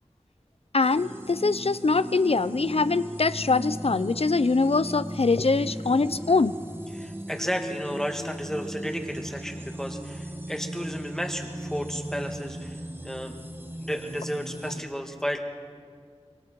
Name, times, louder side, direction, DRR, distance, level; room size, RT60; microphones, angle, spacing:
voice 1, 0.7-6.6, left 3 dB, 60° left, 15 dB, 0.5 m, -23 dB
sound 1, 0.8-14.8, right 1 dB, 20° right, 1.5 m, -37 dB
voice 2, 6.9-12.8 13.0-13.3 13.8-15.4, equal, 5° left, 3 dB, 2.1 m, -33 dB
24.5 x 23.0 x 4.7 m, 2.1 s
wide cardioid pair, 50°, 11 cm